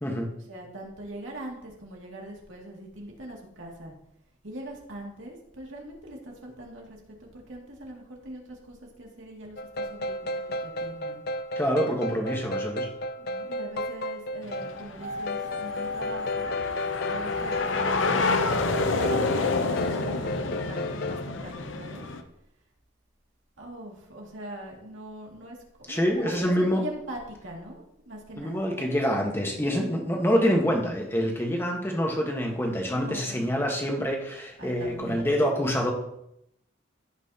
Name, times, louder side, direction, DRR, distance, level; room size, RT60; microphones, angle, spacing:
voice 1, 0.4-3.9 4.4-11.2 13.2-16.5 17.1-22.1 23.6-29.0 30.7-30.9 32.9-33.6 34.6-35.3, right 1 dB, 75° right, -1 dB, 2.4 m, -42 dB
sound 1, 9.6-21.2, left 2 dB, 50° left, 0.4 m, -34 dB
voice 2, 11.6-12.9 25.9-26.8 28.4-35.9, equal, 10° left, 1 dB, 1.3 m, -26 dB
sound 2, 14.4-22.2, left 3 dB, 75° left, 0.8 m, -29 dB
sound 3, 15.0-19.1 19.4-19.5, left 2 dB, 45° right, 2.6 m, -35 dB
15.5 x 5.9 x 2.9 m, 0.79 s
head